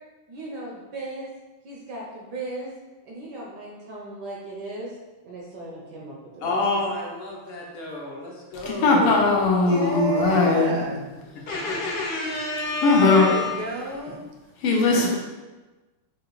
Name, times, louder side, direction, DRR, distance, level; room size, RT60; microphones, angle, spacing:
voice 1, 0.3-1.3 1.6-2.7 3.1-4.9 5.2-6.5, right 2 dB, 65° right, -3 dB, 1.1 m, -37 dB
voice 2, 6.4-9.4 9.9-10.0 11.5-13.5 14.8-15.0, left 3 dB, 70° left, -3 dB, 1.6 m, -29 dB
voice 3, 8.5-10.8 12.8-13.3 14.6-15.1, left 3 dB, 85° left, -1 dB, 1.8 m, -19 dB
voice 4, 9.7-11.1 12.8-14.2, right 2 dB, 85° right, 1 dB, 1.6 m, -30 dB
6.3 x 2.4 x 3.1 m, 1.2 s
omnidirectional pair, 2.4 m